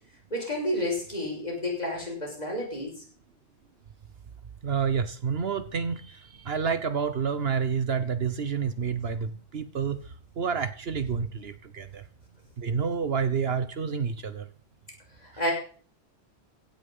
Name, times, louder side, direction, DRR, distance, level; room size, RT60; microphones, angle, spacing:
voice 1, 0.3-3.0 15.2-15.5, left 1 dB, 40° left, 6.0 m, -30 dB
voice 2, 4.6-10.0 10.4-12.0 12.6-14.4, right 6 dB, 65° right, 1.2 m, -29 dB
16.0 x 9.1 x 5.5 m
omnidirectional pair, 1.1 m